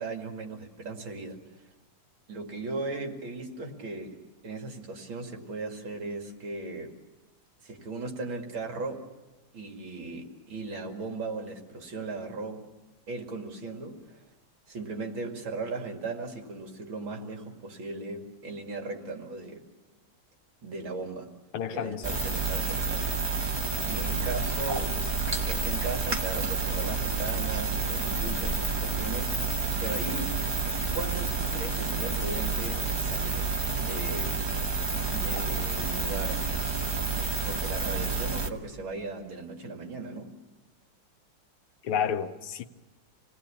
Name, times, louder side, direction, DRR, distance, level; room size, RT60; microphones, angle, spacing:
voice 1, 0.0-1.4 2.3-4.2 4.4-6.9 7.6-9.1 9.5-12.7 13.1-14.2 14.7-19.6 20.6-21.3 21.7-23.2 23.8-25.0 25.3-29.5 29.8-30.4 30.9-33.5 33.8-34.5 35.1-36.5 37.1-40.4, right 3 dB, 65° right, 2.9 m, -37 dB
voice 2, 21.5-22.1 41.8-42.6, left 8 dB, 80° left, 1.9 m, -30 dB
sound 1, 22.0-38.5, right 4 dB, 15° right, 0.8 m, -29 dB
27.0 x 19.0 x 8.5 m
omnidirectional pair, 2.4 m